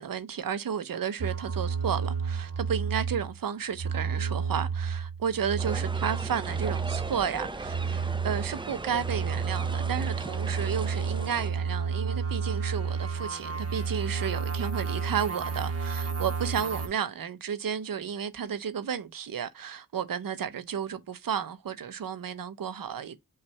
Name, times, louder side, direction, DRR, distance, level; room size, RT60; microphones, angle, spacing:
voice 1, 0.0-23.2, right 8 dB, 70° right, 0.7 m, -32 dB
sound 1, 1.2-3.4 3.7-7.2 7.6-16.9, right 5 dB, 40° right, 0.9 m, -31 dB
sound 2, 5.6-11.5, right 3 dB, 15° right, 0.4 m, -38 dB
5.5 x 2.5 x 3.1 m
wide cardioid pair, 85°, 35 cm